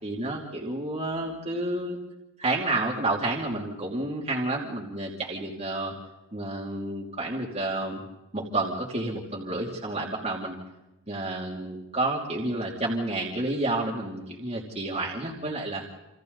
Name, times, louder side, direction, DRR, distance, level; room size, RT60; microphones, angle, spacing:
voice 1, 0.0-2.0 2.4-5.9 6.3-8.0 8.3-10.5 11.1-15.8, right 2 dB, 30° right, -3 dB, 2.8 m, -30 dB
29.0 x 27.5 x 4.1 m, 0.99 s
head